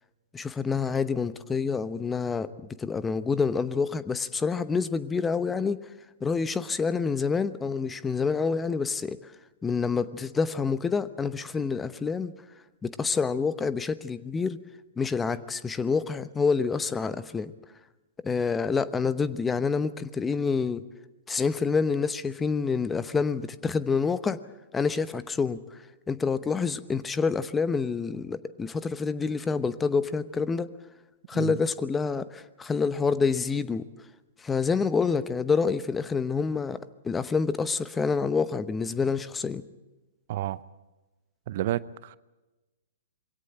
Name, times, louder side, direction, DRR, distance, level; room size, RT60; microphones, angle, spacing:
voice 1, 0.3-2.5 2.8-5.8 6.2-9.3 9.6-12.3 12.8-14.6 15.0-17.5 18.2-20.8 21.3-24.4 24.7-25.8 26.1-30.7 31.3-33.9 34.4-39.6, left 5 dB, 15° left, 14 dB, 0.9 m, -27 dB
voice 2, 40.3-40.6 41.5-42.2, right 13 dB, 50° right, 18 dB, 0.6 m, -30 dB
23.0 x 17.5 x 8.9 m, 1.1 s
figure-of-eight pair, 115°, 0 cm